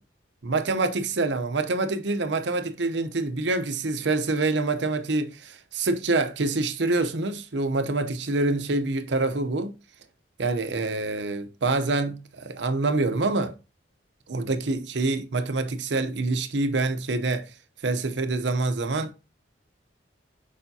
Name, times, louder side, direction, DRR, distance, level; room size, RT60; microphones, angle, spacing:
voice 1, 0.4-9.7 10.4-13.5 14.3-17.5 17.8-19.2, right 3 dB, 65° right, 0.7 m, -26 dB
7.0 x 5.0 x 2.7 m
head